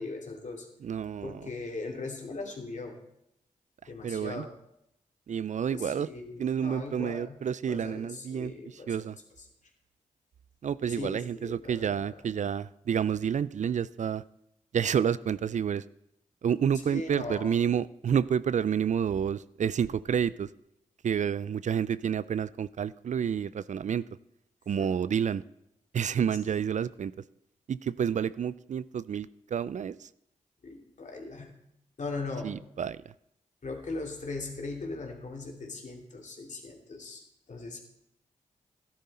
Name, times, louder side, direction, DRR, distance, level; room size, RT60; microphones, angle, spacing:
voice 1, 0.0-0.7 1.2-3.0 3.9-4.5 5.7-7.4 7.7-9.0 10.9-12.1 16.9-17.5 24.8-24.9 30.6-31.5 32.0-32.6 33.6-37.8, left 3 dB, 60° left, 1 dB, 2.7 m, -39 dB
voice 2, 0.8-1.5 4.0-4.5 5.3-6.1 6.4-9.2 10.6-14.2 14.7-15.8 16.4-20.5 21.0-24.1 24.7-25.4 25.9-27.1 27.7-30.1 32.4-33.1, right 8 dB, 60° right, 18 dB, 0.4 m, -29 dB
13.0 x 10.5 x 4.2 m, 0.79 s
cardioid pair, 45°, 14 cm